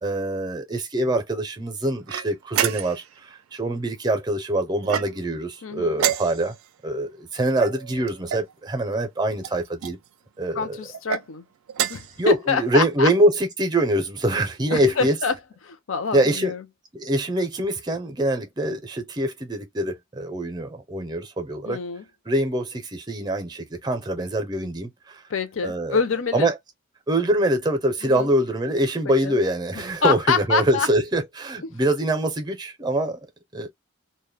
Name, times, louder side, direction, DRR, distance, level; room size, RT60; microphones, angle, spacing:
voice 1, 0.0-6.6 6.8-10.0 10.4-10.8 12.2-15.2 16.1-16.5 16.9-21.8 22.3-25.2 25.6-26.0 26.3-26.6 27.1-33.2 33.5-33.7, right 1 dB, 20° right, 0.5 m, -24 dB
sound 1, 2.1-3.1 4.8-5.4 5.9-6.7 7.6-8.5 9.4-10.0 10.9-11.2 11.7-12.2, right 10 dB, 80° right, 0.3 m, -28 dB
voice 2, 5.6-6.0 10.5-11.4 11.9-13.1 14.7-15.3 15.6-16.6 21.6-22.0 25.3-26.5 28.0-28.3 29.2-29.4 30.0-30.9, left 5 dB, 70° left, 0.5 m, -25 dB
2.2 x 2.0 x 3.2 m
head